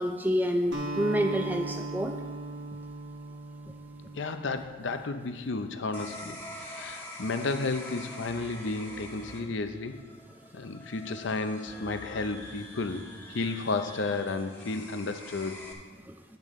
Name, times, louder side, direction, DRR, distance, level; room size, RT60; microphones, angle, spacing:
voice 1, 0.0-2.1 16.1-16.2, equal, 10° right, 5 dB, 0.3 m, -28 dB
Acoustic guitar, 0.7-5.2, right 2 dB, 80° right, 1.3 m, -38 dB
voice 2, 4.1-10.0 10.5-15.6, left 3 dB, 70° left, 8 dB, 0.6 m, -33 dB
sound 1, 5.9-15.7, left 1 dB, 10° left, 1.2 m, -45 dB
10.5 x 8.2 x 3.6 m, 1.4 s
head